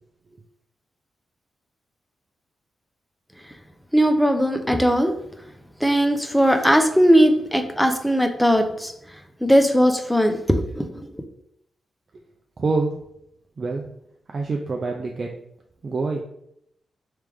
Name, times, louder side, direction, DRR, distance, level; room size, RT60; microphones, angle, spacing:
voice 1, 3.9-5.1 5.8-8.9 9.4-11.1, equal, ahead, 6 dB, 0.6 m, -19 dB
voice 2, 12.6-13.0 13.6-13.8 14.3-15.3 15.8-16.2, right 3 dB, 50° right, 1 dB, 0.4 m, -25 dB
3.3 x 3.2 x 3.4 m, 0.74 s
cardioid pair, 60°, 0 cm